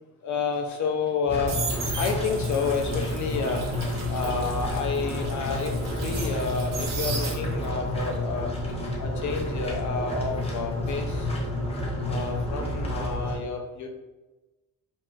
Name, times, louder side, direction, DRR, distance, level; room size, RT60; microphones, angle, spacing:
voice 1, 0.2-1.6 1.9-3.7 4.1-8.5 9.0-11.3 12.1-13.9, left 5 dB, 55° left, 3 dB, 0.6 m, -30 dB
sound 1, 1.0-7.8 8.1-11.0 11.3-11.6, right 4 dB, 65° right, 1.1 m, -37 dB
sound 2, 1.3-13.4, left 1 dB, 15° left, 0.6 m, -30 dB
4.4 x 4.3 x 2.5 m, 1.1 s
cardioid pair, 155°, 35 cm